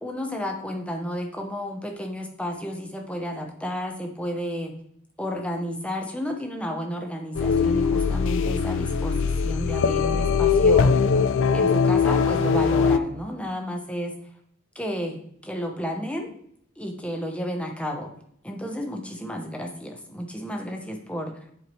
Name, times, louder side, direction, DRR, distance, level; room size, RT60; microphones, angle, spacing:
voice 1, 0.0-4.7 5.2-11.0 11.5-14.2 14.7-16.3 16.8-18.1 18.4-21.4, equal, 5° left, 2 dB, 0.9 m, -32 dB
sound 1, 7.3-13.0, left 5 dB, 60° left, 0.4 m, -21 dB
11.0 x 4.6 x 3.2 m, 0.69 s
head